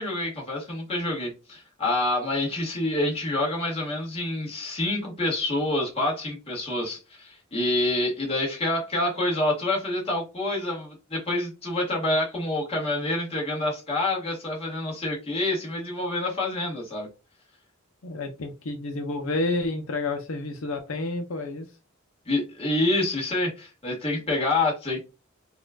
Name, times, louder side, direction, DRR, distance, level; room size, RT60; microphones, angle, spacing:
voice 1, 0.0-17.1 22.3-25.0, left 2 dB, 30° left, 1.6 m, -27 dB
voice 2, 18.0-21.7, left 2 dB, 80° left, 0.6 m, -30 dB
4.2 x 2.4 x 2.2 m
head